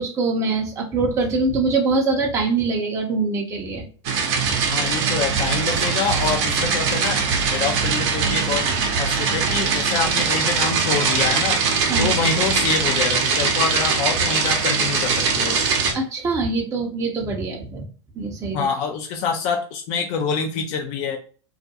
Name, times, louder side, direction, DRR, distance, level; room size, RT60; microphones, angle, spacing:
voice 1, 0.0-3.9 11.9-12.1 15.9-17.9 18.2-18.7, right 3 dB, 20° right, 0 dB, 0.6 m, -23 dB
sound 1, 4.0-15.9, right 5 dB, 55° right, 0.7 m, -21 dB
voice 2, 4.7-7.2 7.5-8.7 9.0-11.6 12.0-15.6 18.5-21.2, left 6 dB, 45° left, 2 dB, 0.5 m, -26 dB
2.3 x 2.1 x 2.8 m, 0.39 s
hypercardioid pair, 105°, 16 cm